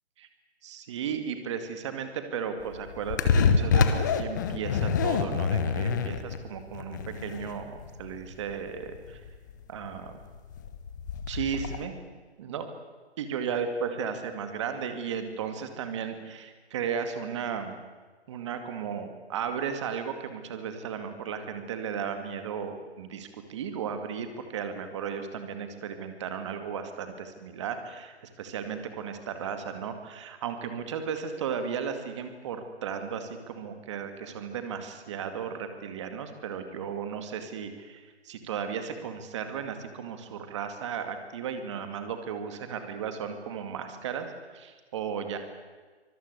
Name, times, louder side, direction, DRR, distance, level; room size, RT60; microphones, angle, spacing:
voice 1, 0.6-9.2 9.7-10.1 11.3-11.9 12.4-12.6 13.2-17.8 18.3-45.4, right 7 dB, 25° right, 8 dB, 2.3 m, -35 dB
sound 1, 2.6-11.8, left 5 dB, 15° left, 0.9 m, -27 dB
25.5 x 19.5 x 8.3 m, 1.4 s
hypercardioid pair, 165°, 34 cm